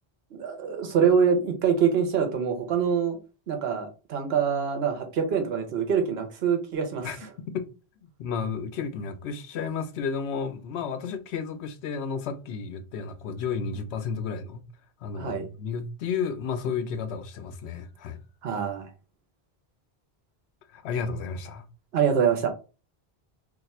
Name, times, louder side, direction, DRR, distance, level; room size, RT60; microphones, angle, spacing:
voice 1, 0.3-3.2 3.5-7.1 15.1-15.4 18.4-18.9 21.9-22.5, right 7 dB, 75° right, 1.0 m, -25 dB
voice 2, 8.0-14.6 15.0-18.2 20.7-21.7, left 6 dB, 85° left, 0.9 m, -32 dB
2.6 x 2.4 x 4.1 m
omnidirectional pair, 1.1 m